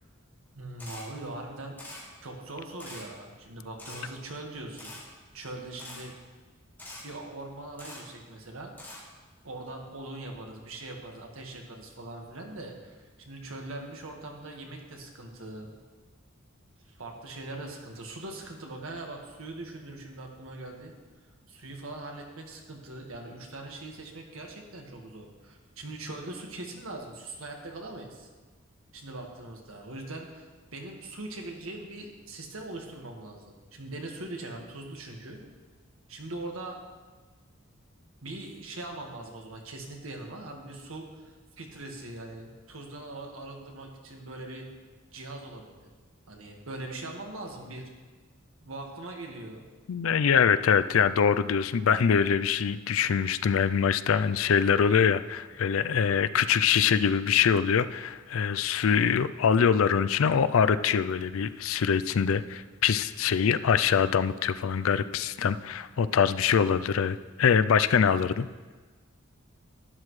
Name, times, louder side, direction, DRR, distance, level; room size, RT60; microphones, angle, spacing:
voice 1, 0.5-1.8 2.2-4.9 5.3-6.1 7.0-8.7 9.4-15.7 16.9-20.9 21.5-28.3 28.9-35.4 36.1-36.8 38.2-44.7 45.1-45.9 46.3-47.9 48.6-49.6, right 2 dB, 85° right, 1 dB, 1.7 m, -41 dB
Camera, 0.8-1.0 1.8-2.0 2.8-3.0 3.8-4.0 4.8-5.0 5.8-6.0 6.8-7.0 7.8-8.0 8.8-9.0, left 2 dB, 10° left, 2.7 m, -43 dB
voice 2, 49.9-68.5, left 7 dB, 75° left, 14 dB, 0.4 m, -24 dB
12.0 x 10.5 x 3.2 m, 1.4 s
head